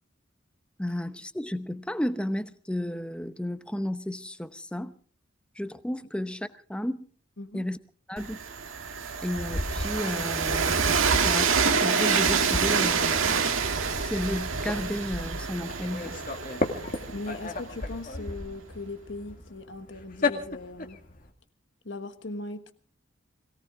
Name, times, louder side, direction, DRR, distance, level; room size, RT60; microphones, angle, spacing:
voice 1, 0.8-4.9 5.6-7.0 7.5-7.8 8.1-8.4 9.2-10.8 11.1-13.3 14.0-16.2, left 1 dB, 5° left, 0.7 m, -33 dB
Train, 8.2-18.0, right 5 dB, 90° right, 1.8 m, -27 dB
sound 1, 8.6-21.3, left 2 dB, 45° left, 2.0 m, -35 dB
voice 2, 17.1-21.0 21.8-22.7, left 2 dB, 65° left, 1.5 m, -39 dB
22.0 x 17.5 x 3.7 m
head